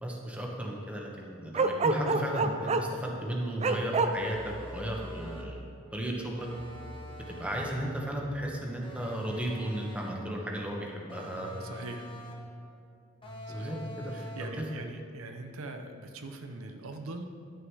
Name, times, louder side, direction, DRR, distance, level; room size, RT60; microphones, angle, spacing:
voice 1, 0.0-5.6 5.9-6.5 7.3-11.5 13.5-14.2 14.6-14.7, right 1 dB, 5° right, -1 dB, 1.1 m, -35 dB
Bark, 1.5-3.0 3.6-4.1, right 3 dB, 30° right, 0.4 m, -26 dB
sound 1, 4.1-5.6 6.4-7.9 8.8-10.3 11.1-12.5 13.2-14.7, equal, 25° left, 1.4 m, -44 dB
voice 2, 11.6-12.1 13.5-13.8 14.1-17.3, right 2 dB, 85° right, 5 dB, 0.7 m, -42 dB
11.0 x 6.4 x 4.7 m, 2.5 s
head